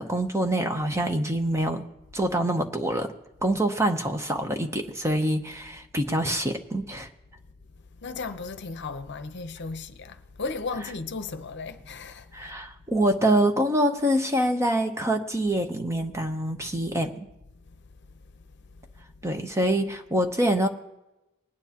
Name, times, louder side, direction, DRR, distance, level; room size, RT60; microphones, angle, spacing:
voice 1, 0.0-1.8 2.1-3.1 3.4-7.1 12.3-17.3 19.2-20.7, right 1 dB, 15° right, 0.8 m, -25 dB
voice 2, 8.0-12.6 17.6-17.8 18.1-18.2 18.7-18.8, left 4 dB, 55° left, 0.8 m, -36 dB
20.5 x 9.6 x 2.9 m
head